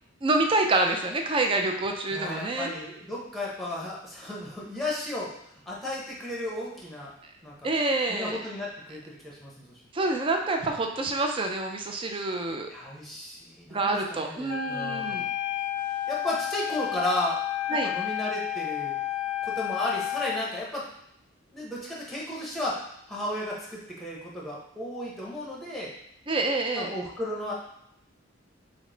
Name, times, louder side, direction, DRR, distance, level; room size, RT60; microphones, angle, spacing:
voice 1, 0.2-2.7 7.6-8.4 9.9-12.7 13.7-15.3 17.7-17.9 26.3-26.9, right 2 dB, 25° right, 3 dB, 0.4 m, -27 dB
voice 2, 2.1-5.3 5.7-7.1 7.4-7.5 8.1-9.7 12.7-15.3 16.1-17.4 17.7-18.9 19.4-20.9 21.5-22.8 23.1-25.9 26.8-27.5, left 1 dB, ahead, -5 dB, 0.8 m, -34 dB
Wind instrument woodwind instrument, 14.5-20.5, left 12 dB, 80° left, 0.4 m, -31 dB
5.2 x 2.1 x 3.8 m, 0.77 s
head